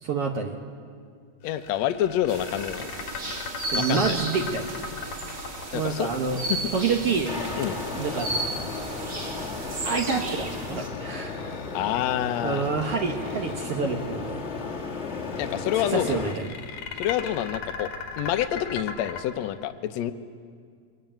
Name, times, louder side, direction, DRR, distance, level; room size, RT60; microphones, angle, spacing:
voice 1, 0.0-0.6 3.7-4.7 5.7-6.4 6.7-7.3 8.0-8.3 9.8-11.4 12.4-14.5 15.9-16.5, right 5 dB, 55° right, 2 dB, 2.0 m, -27 dB
voice 2, 1.4-2.9 3.8-4.2 5.7-6.1 6.5-6.6 7.6-7.8 11.7-12.6 15.4-16.2 17.0-17.9 18.2-20.1, left 11 dB, 70° left, 9 dB, 1.9 m, -27 dB
sound 1, 1.5-7.7 10.5-12.1 12.6-13.9 15.2-19.2, left 5 dB, 90° left, 3.6 m, -38 dB
sound 2, 2.3-10.9, right 2 dB, 35° right, 3.1 m, -34 dB
sound 3, 7.3-16.3, left 4 dB, 30° left, 1.2 m, -34 dB
23.5 x 21.5 x 9.1 m, 2.1 s
omnidirectional pair, 3.6 m